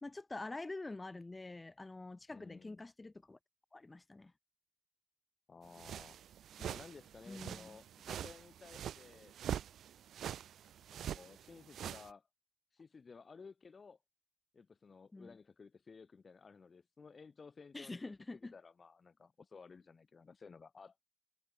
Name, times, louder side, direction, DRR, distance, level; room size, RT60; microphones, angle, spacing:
voice 1, 0.0-3.4 3.7-4.3 7.3-7.8 15.1-15.4 17.7-18.5, left 2 dB, 20° left, 1.4 m, -46 dB
voice 2, 2.3-2.8 5.5-6.2 6.6-9.4 10.9-12.3 12.7-14.0 14.5-18.1 18.5-21.0, left 5 dB, 40° left, 5.4 m, -56 dB
sound 1, 5.7-12.1, right 10 dB, 80° right, 1.1 m, -45 dB
cardioid pair, 100°, 0 cm